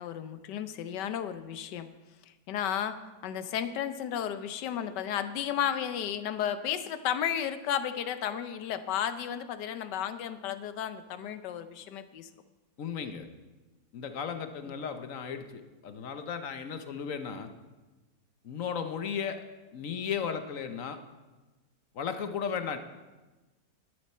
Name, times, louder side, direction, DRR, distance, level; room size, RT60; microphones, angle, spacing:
voice 1, 0.0-1.9 2.5-12.3 14.6-14.7, left 9 dB, 80° left, 11 dB, 1.3 m, -33 dB
voice 2, 12.8-13.3 13.9-17.5 18.4-19.4 19.7-21.0 21.9-22.8, left 7 dB, 60° left, 8 dB, 1.0 m, -35 dB
12.0 x 11.0 x 4.3 m, 1.2 s
omnidirectional pair, 1.9 m